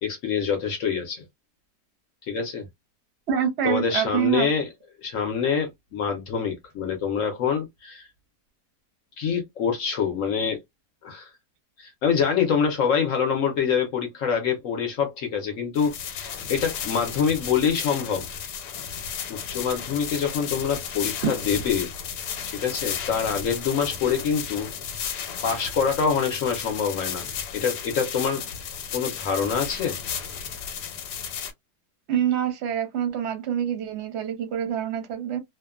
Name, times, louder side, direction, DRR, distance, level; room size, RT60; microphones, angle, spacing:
voice 1, 0.0-1.2 2.2-2.6 3.6-4.7 5.0-8.1 9.2-10.6 11.0-11.3 11.8-18.2 19.3-21.9 22.5-24.7 25.4-27.2 27.5-28.4 28.9-29.9, left 6 dB, 60° left, 0.9 m, -25 dB
voice 2, 3.3-4.5 21.2-21.3 32.1-35.4, right 9 dB, 55° right, 0.8 m, -26 dB
sound 1, 15.8-31.5, left 7 dB, 85° left, 1.2 m, -34 dB
2.8 x 2.1 x 2.3 m
omnidirectional pair, 1.8 m